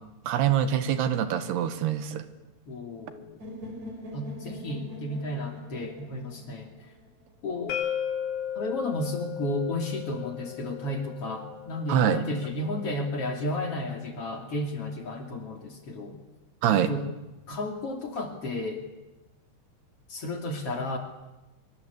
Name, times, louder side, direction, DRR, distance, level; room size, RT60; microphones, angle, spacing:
voice 1, 0.3-2.2 11.9-12.2 16.6-16.9, right 10 dB, 80° right, 11 dB, 3.6 m, -24 dB
voice 2, 2.7-3.4 4.1-6.7 7.4-7.8 8.5-16.2 16.7-17.1 17.5-18.8 20.1-21.0, left 1 dB, 40° left, 4 dB, 3.2 m, -33 dB
sound 1, 3.4-7.4, left 1 dB, 45° right, 6.3 m, -43 dB
sound 2, 7.7-13.5, left 9 dB, 80° left, 4.1 m, -36 dB
24.0 x 24.0 x 8.4 m, 1.0 s
omnidirectional pair, 4.6 m